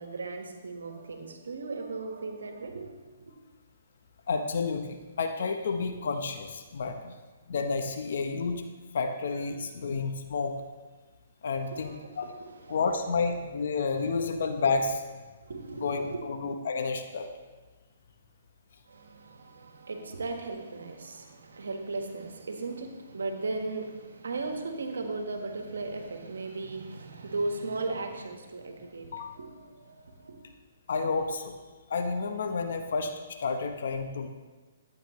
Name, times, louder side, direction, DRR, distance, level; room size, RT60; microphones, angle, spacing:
voice 1, 0.0-3.3 11.6-12.8 14.0-14.1 15.4-16.2 18.9-30.4, right 3 dB, 85° right, 4 dB, 1.4 m, -37 dB
voice 2, 4.3-7.2 7.5-8.6 8.9-10.6 11.4-11.9 12.2-12.3 12.7-15.0 15.8-17.3 29.1-29.3 30.9-31.5 31.9-34.3, left 4 dB, 70° left, 6 dB, 0.9 m, -30 dB
12.5 x 8.8 x 3.2 m, 1.3 s
hypercardioid pair, 140°, 0 cm